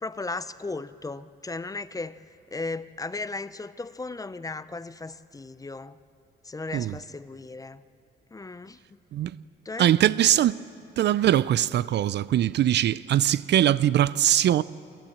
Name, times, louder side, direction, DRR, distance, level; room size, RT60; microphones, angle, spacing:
voice 1, 0.0-2.2 2.5-6.0 6.4-7.8 8.3-8.8 9.7-9.9, left 3 dB, 15° left, 0.5 m, -36 dB
voice 2, 9.8-10.6 11.0-14.6, right 12 dB, 60° right, 0.4 m, -21 dB
28.0 x 11.5 x 8.6 m
cardioid pair, 90°, 20 cm